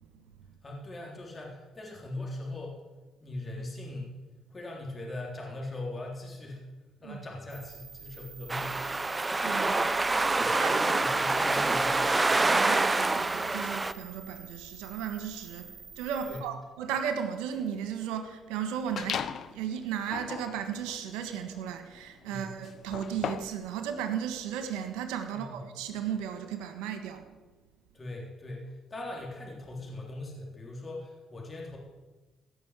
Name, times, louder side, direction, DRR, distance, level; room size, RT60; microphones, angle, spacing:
voice 1, 0.6-2.8 3.2-4.1 4.5-6.6 7.0-8.8 10.4-12.4 16.3-16.4 22.3-22.6 25.3-25.6 27.9-31.8, left 2 dB, 30° left, -2 dB, 3.7 m, -40 dB
sound 1, 7.5-16.4, right 6 dB, 70° right, 5.0 m, -49 dB
sound 2, 8.5-13.9, right 3 dB, 25° right, 0.7 m, -26 dB
voice 2, 9.4-9.9 10.5-10.8 12.5-27.2, right 8 dB, 85° right, 7 dB, 1.5 m, -35 dB
sound 3, 19.0-19.6 20.0-23.7, left 8 dB, 60° left, 0.8 m, -37 dB
15.5 x 6.3 x 8.3 m, 1.2 s
supercardioid pair, 60°, 0 cm